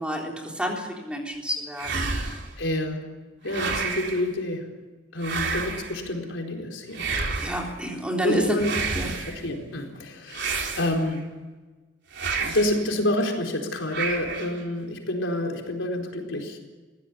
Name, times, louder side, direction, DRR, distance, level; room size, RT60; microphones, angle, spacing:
voice 1, 0.0-2.1 7.4-8.6 9.0-9.1, equal, 5° right, 0 dB, 3.6 m, -29 dB
sound 1, 1.8-2.6 3.5-4.2 5.2-6.0 6.9-7.7 8.6-9.4 10.3-11.2 12.1-12.8 13.9-14.6, right 4 dB, 60° right, 3.8 m, -30 dB
voice 2, 2.6-4.8 5.1-7.1 8.2-11.5 12.4-16.6, left 1 dB, 75° left, 2 dB, 4.3 m, -28 dB
22.0 x 16.5 x 8.5 m, 1.3 s
head